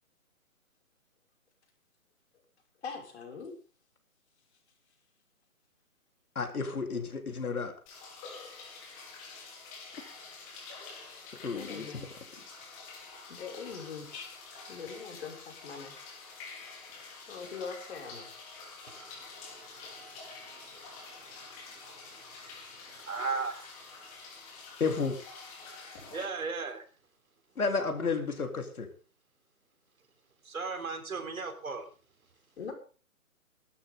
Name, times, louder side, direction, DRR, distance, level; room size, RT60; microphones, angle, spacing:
voice 1, 2.8-3.5 11.5-12.1 13.3-14.4 14.7-15.9 17.3-18.3 32.6-32.7, left 5 dB, 45° left, 2 dB, 6.0 m, -42 dB
voice 2, 6.4-7.7 11.4-11.9 24.8-25.2 27.6-28.9, left 4 dB, 75° left, 4 dB, 4.0 m, -31 dB
sound 1, 7.9-26.2, left 4 dB, 25° left, 5.0 m, -48 dB
voice 3, 18.9-23.8 26.1-26.8 30.4-31.9, right 4 dB, 70° right, 6 dB, 4.0 m, -39 dB
21.0 x 12.5 x 3.8 m, 0.37 s
hypercardioid pair, 155°, 44 cm